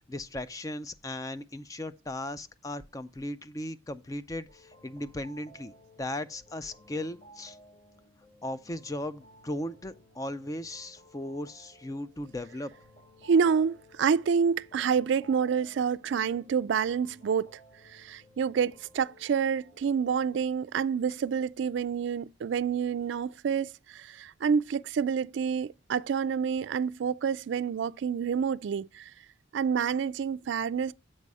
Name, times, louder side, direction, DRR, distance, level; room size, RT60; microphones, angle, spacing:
voice 1, 0.1-5.7 6.0-7.6 8.4-12.7, left 1 dB, 15° left, 0.4 m, -37 dB
sound 1, 4.5-20.3, equal, 35° left, 2.2 m, -57 dB
voice 2, 13.2-17.6 17.9-29.1 29.5-30.9, right 6 dB, 65° right, 0.3 m, -28 dB
7.6 x 4.8 x 5.3 m
head